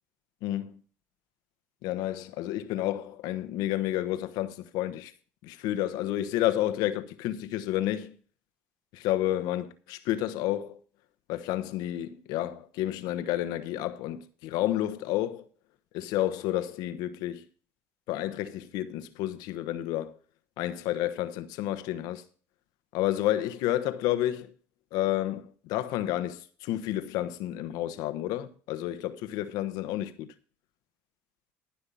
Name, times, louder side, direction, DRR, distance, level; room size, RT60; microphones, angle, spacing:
voice 1, 0.4-0.8 1.8-5.1 5.4-8.1 8.9-10.8 11.3-15.4 15.9-17.4 18.1-20.2 20.6-22.2 22.9-24.5 24.9-30.3, left 13 dB, 75° left, 1.1 m, -30 dB
14.5 x 5.8 x 5.5 m
supercardioid pair, 85°, 7 cm